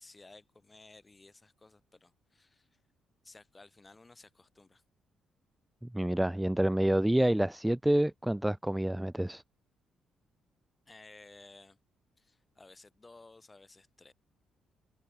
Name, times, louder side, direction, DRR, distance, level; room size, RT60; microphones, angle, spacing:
voice 1, 0.0-2.8 3.2-4.8 10.9-11.8 12.2-14.1, left 3 dB, 20° left, 4.6 m, -56 dB
voice 2, 5.8-9.4, right 1 dB, 5° right, 0.7 m, -28 dB
cardioid pair, 90°, 0 cm